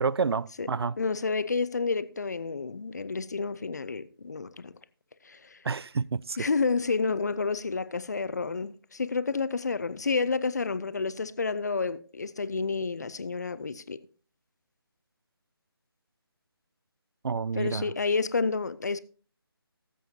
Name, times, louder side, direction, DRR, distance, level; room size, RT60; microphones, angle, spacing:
voice 1, 0.0-1.0 5.6-6.4 17.2-17.9, right 5 dB, 80° right, 0.4 m, -29 dB
voice 2, 1.0-4.7 5.2-5.6 6.4-14.0 17.5-19.0, left 4 dB, 45° left, 0.6 m, -30 dB
18.0 x 7.7 x 2.7 m
figure-of-eight pair, 170°, 13 cm